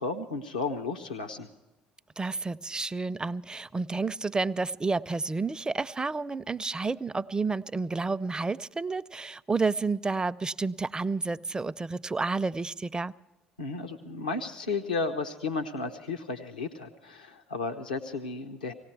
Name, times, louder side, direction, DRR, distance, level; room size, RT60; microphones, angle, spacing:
voice 1, 0.0-1.5 13.6-18.7, left 3 dB, 85° left, 6 dB, 0.8 m, -33 dB
voice 2, 2.2-13.1, right 3 dB, 20° right, 17 dB, 0.5 m, -30 dB
18.5 x 17.0 x 4.6 m, 1.0 s
figure-of-eight pair, 55°, 4 cm